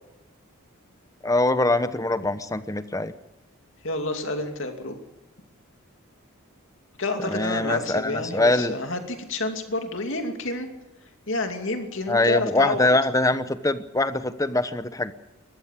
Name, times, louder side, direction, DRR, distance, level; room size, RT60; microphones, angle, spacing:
voice 1, 1.2-3.1 7.2-8.7 12.1-15.1, left 2 dB, 15° left, 12 dB, 0.9 m, -23 dB
voice 2, 3.8-5.0 7.0-10.7 11.3-12.9, left 2 dB, 60° left, 5 dB, 2.7 m, -29 dB
21.0 x 15.0 x 8.3 m, 1.0 s
head